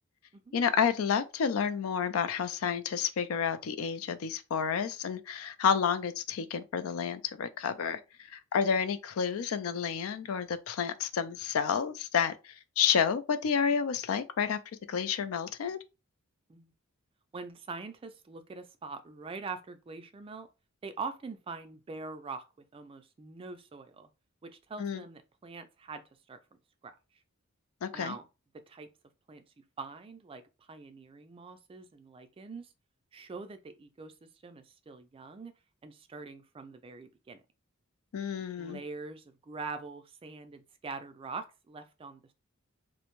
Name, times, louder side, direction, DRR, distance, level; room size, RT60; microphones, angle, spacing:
voice 1, 0.5-8.0 8.3-14.6 14.9-15.8 24.8-25.0 27.8-28.2 38.1-38.8, left 7 dB, 80° left, 0.4 m, -30 dB
voice 2, 17.3-20.5 20.8-24.1 24.4-26.0 26.3-26.4 26.8-26.9 27.9-28.2 28.5-28.9 29.3-32.7 33.1-35.6 35.8-37.4 38.6-42.3, right 4 dB, 25° right, 0.3 m, -43 dB
2.5 x 2.1 x 2.9 m
head